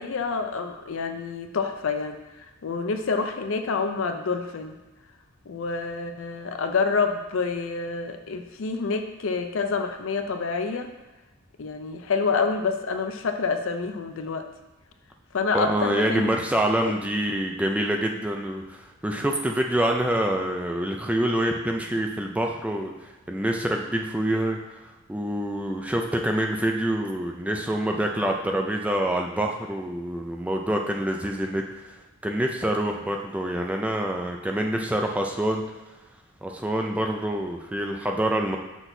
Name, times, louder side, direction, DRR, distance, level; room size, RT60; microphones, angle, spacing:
voice 1, 0.0-2.2 2.6-4.8 5.5-10.9 11.6-14.5 15.3-16.3 16.9-17.0, left 4 dB, 65° left, 7 dB, 0.5 m, -27 dB
voice 2, 15.5-18.8 19.0-24.6 25.1-31.6 32.2-35.6 36.4-38.6, right 1 dB, 5° right, 2 dB, 0.4 m, -26 dB
6.1 x 5.9 x 2.7 m, 1.1 s
head